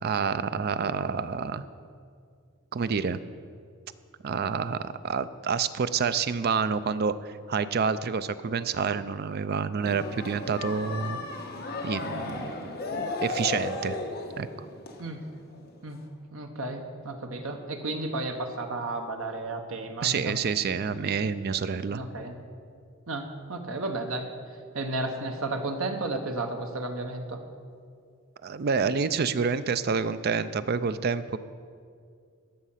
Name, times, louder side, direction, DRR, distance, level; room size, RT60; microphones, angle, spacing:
voice 1, 0.0-1.6 2.7-3.2 4.2-11.2 11.8-14.0 14.4-14.5 20.0-22.1 28.4-31.4, right 5 dB, 50° right, 13 dB, 0.4 m, -28 dB
sound 1, 9.8-15.7 16.0-16.1, left 2 dB, 50° left, 1.3 m, -35 dB
voice 2, 16.3-20.3 21.9-22.4 23.1-24.3 24.7-27.4, right 2 dB, 75° right, 5 dB, 1.0 m, -33 dB
13.0 x 6.4 x 5.7 m, 2.2 s
head